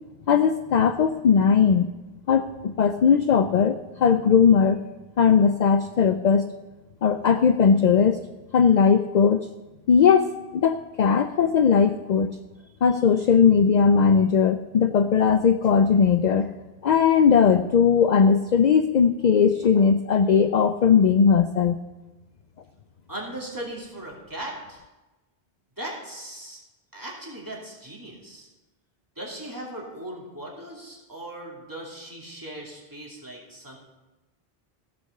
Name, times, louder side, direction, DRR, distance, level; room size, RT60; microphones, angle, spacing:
voice 1, 0.3-1.9 2.3-4.8 5.2-6.5 7.0-8.2 8.5-9.5 9.9-12.3 12.8-16.5 16.8-21.8, left 6 dB, 55° left, 10 dB, 0.5 m, -19 dB
voice 2, 23.1-24.8 25.8-26.6 26.9-28.5 29.2-33.8, right 1 dB, 20° right, -4 dB, 2.7 m, -38 dB
15.5 x 5.9 x 6.6 m, 1.1 s
omnidirectional pair, 1.0 m